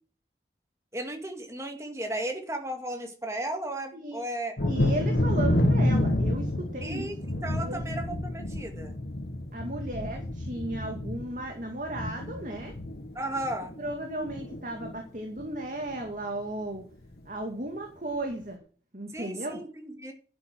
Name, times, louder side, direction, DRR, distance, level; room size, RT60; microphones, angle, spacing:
voice 1, 0.9-4.7 6.8-8.9 13.2-13.7 19.1-20.1, right 1 dB, 15° right, 4 dB, 2.1 m, -35 dB
Thunder, 4.6-14.0 14.3-15.0 15.4-15.5 15.9-16.1, left 1 dB, 65° left, 1.7 m, -29 dB
voice 2, 4.7-7.1 7.6-7.8 9.5-12.7 13.8-16.9 17.3-18.6 18.9-19.6, right 1 dB, 45° right, 3 dB, 2.2 m, -35 dB
11.0 x 8.5 x 6.3 m, 0.41 s
head